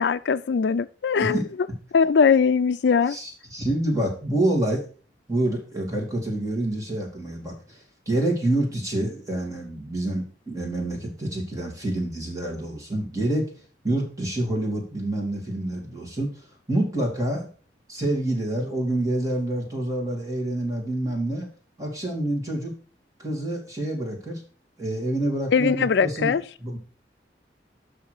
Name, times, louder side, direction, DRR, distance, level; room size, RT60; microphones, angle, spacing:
voice 1, 0.0-1.4 1.9-3.2 25.5-26.4, left 6 dB, 75° left, 0.4 m, -20 dB
voice 2, 3.1-4.8 5.3-13.5 13.8-17.5 17.9-21.5 21.8-22.8 23.2-24.4 24.8-26.3 26.6-26.8, right 1 dB, 20° right, 2.7 m, -27 dB
6.1 x 5.7 x 6.5 m
head